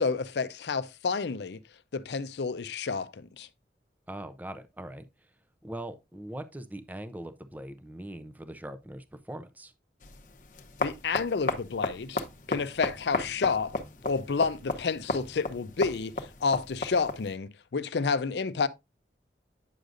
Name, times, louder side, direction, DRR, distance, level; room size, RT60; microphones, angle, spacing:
voice 1, 0.0-1.6 1.9-3.5 10.8-12.2 12.5-13.8 14.0-18.7, left 4 dB, 75° left, 0.5 m, -30 dB
voice 2, 4.1-5.0 5.6-9.7, right 1 dB, 10° right, 0.5 m, -41 dB
sound 1, 10.0-17.4, left 2 dB, 45° left, 0.8 m, -35 dB
9.2 x 6.5 x 2.5 m
head